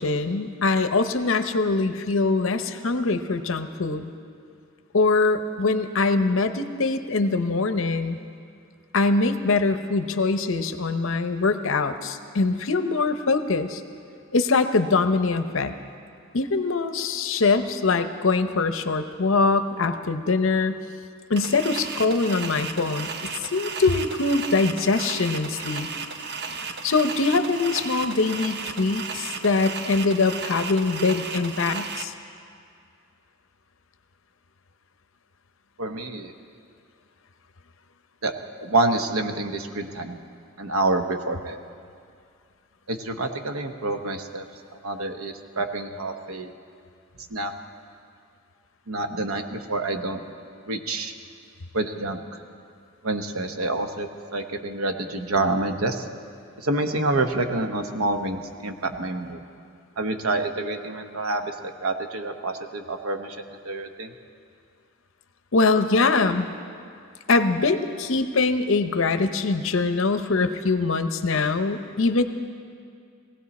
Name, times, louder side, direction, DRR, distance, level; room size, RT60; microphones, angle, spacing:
voice 1, 0.0-4.1 4.9-8.2 8.9-13.8 14.3-15.8 16.3-20.8 21.3-25.9 26.8-32.1 65.5-66.5 67.3-72.2, left 3 dB, 60° left, 9 dB, 0.7 m, -23 dB
sound 1, 21.4-32.0, right 5 dB, 50° right, 0.7 m, -34 dB
voice 2, 35.8-36.3 38.2-38.3 38.6-40.2 40.6-41.6 42.9-44.5 44.8-46.5 47.3-47.5 48.9-50.2 50.7-51.1 51.7-52.2 53.0-56.0 56.6-59.4 60.0-64.1, right 2 dB, 80° right, 7 dB, 1.0 m, -27 dB
19.0 x 16.0 x 4.2 m, 2.3 s
head